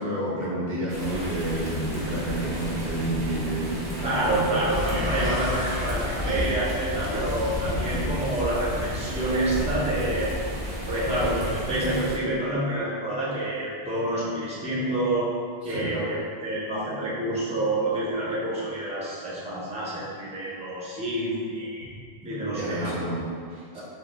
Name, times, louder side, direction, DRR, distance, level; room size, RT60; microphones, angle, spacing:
voice 1, 0.0-3.8 4.1-5.0 7.6-8.1 15.6-16.0 21.8-22.0 22.5-23.8, right 1 dB, 65° right, -7 dB, 1.1 m, -31 dB
sound 1, 0.9-12.2, equal, 40° right, 0.9 m, -32 dB
voice 2, 4.0-10.3 10.9-15.3 15.6-21.9 22.2-22.9 23.7-23.8, right 1 dB, 5° right, -8 dB, 0.9 m, -28 dB
sound 2, 4.7-8.6, left 3 dB, 50° left, 1.0 m, -33 dB
4.4 x 2.7 x 3.6 m, 2.1 s
omnidirectional pair, 1.1 m